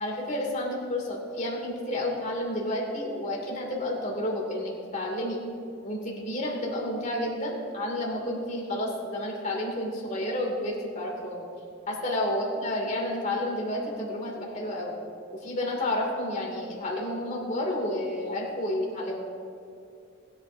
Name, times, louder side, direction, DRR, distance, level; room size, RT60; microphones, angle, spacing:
voice 1, 0.0-5.4 5.8-11.5 11.9-15.0 15.3-19.2, left 1 dB, 40° left, -2 dB, 2.8 m, -30 dB
20.0 x 10.5 x 2.8 m, 2.6 s
head